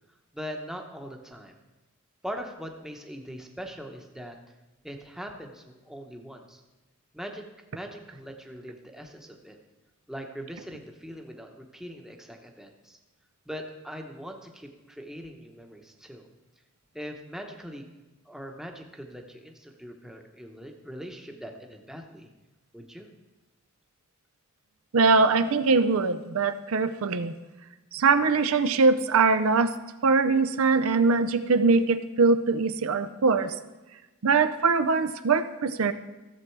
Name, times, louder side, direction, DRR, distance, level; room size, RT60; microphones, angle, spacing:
voice 1, 0.3-1.6 2.2-4.4 4.8-6.6 7.1-7.4 7.7-9.6 10.1-13.0 13.5-16.3 16.9-17.9 18.2-22.3 22.7-23.1, equal, ahead, 2 dB, 0.9 m, -41 dB
voice 2, 24.9-27.3 27.9-29.7 30.0-33.5 34.2-35.9, right 4 dB, 70° right, 10 dB, 0.5 m, -22 dB
14.5 x 7.4 x 4.6 m, 1.1 s
head